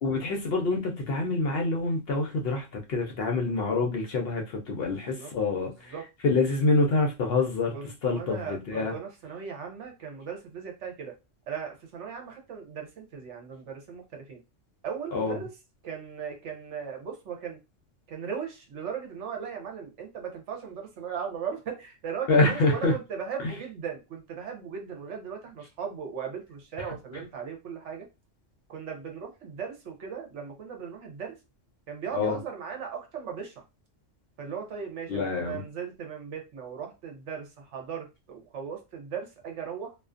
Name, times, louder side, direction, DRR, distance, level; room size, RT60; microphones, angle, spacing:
voice 1, 0.0-5.9 6.2-7.7 8.0-8.9 15.1-15.4 22.3-22.9 26.8-26.9 32.1-32.4 35.1-35.6, left 3 dB, 60° left, 0.7 m, -26 dB
voice 2, 4.8-5.3 5.6-6.0 7.7-11.1 11.5-14.4 14.8-15.5 15.8-17.6 18.1-28.1 28.7-31.4 31.9-33.6 34.4-40.0, right 7 dB, 70° right, 1.1 m, -38 dB
2.4 x 2.4 x 2.4 m
omnidirectional pair, 1.3 m